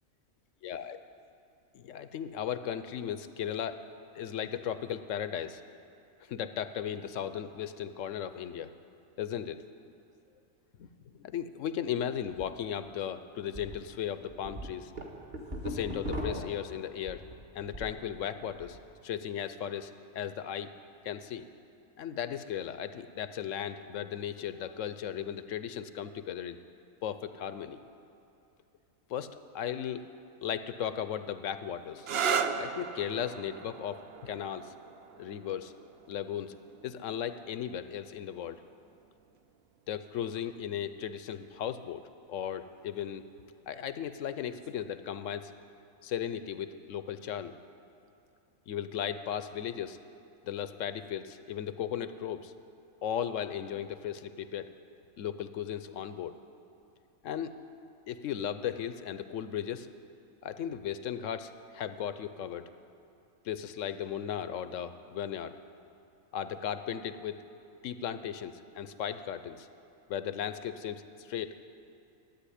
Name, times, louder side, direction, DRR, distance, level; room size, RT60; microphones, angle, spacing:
voice 1, 0.6-1.0 1.7-3.8 4.1-5.6 6.3-8.7 9.2-9.6 10.8-14.9 15.6-17.2 17.5-18.8 19.0-20.7 21.0-21.5 22.0-26.6 27.0-27.8 29.1-30.0 30.4-32.1 32.6-34.7 35.2-35.7 36.1-36.5 36.8-38.6 39.9-42.0 42.3-43.2 43.7-45.5 46.0-47.5 48.7-50.0 50.5-52.5 53.0-54.7 55.2-56.3 57.2-57.5 58.1-59.9 60.4-62.7 63.4-65.6 66.3-67.4 67.8-69.7 70.1-71.6, left 9 dB, 65° left, 11 dB, 0.9 m, -36 dB
sound 1, 12.4-12.5 12.9-13.0 13.5-13.8 14.2-18.0 18.4-18.8, equal, 35° right, 1.7 m, -38 dB
sound 2, 32.0-39.4 40.4-40.9 44.5-44.8, right 6 dB, 55° right, 0.7 m, -37 dB
13.0 x 8.6 x 10.0 m, 2.7 s
omnidirectional pair, 1.5 m